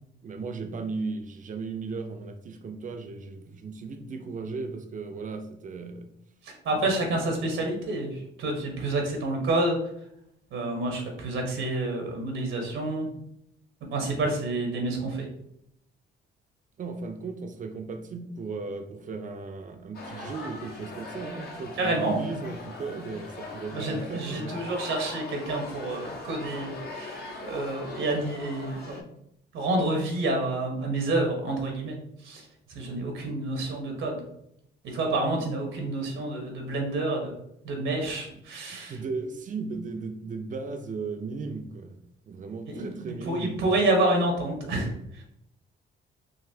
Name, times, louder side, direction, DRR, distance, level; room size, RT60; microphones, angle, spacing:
voice 1, 0.2-6.1 16.8-24.6 35.2-35.3 38.3-38.4 38.7-43.7, right 4 dB, 40° right, 0.5 m, -36 dB
voice 2, 6.4-9.8 10.5-13.1 13.9-15.3 21.8-22.2 23.7-29.0 29.5-34.2 34.8-37.3 37.6-39.0 42.7-45.2, right 2 dB, 80° right, 1.1 m, -29 dB
sound 1, 19.9-29.0, left 3 dB, 55° left, 0.8 m, -41 dB
3.9 x 2.6 x 2.7 m
cardioid pair, 90°, 20 cm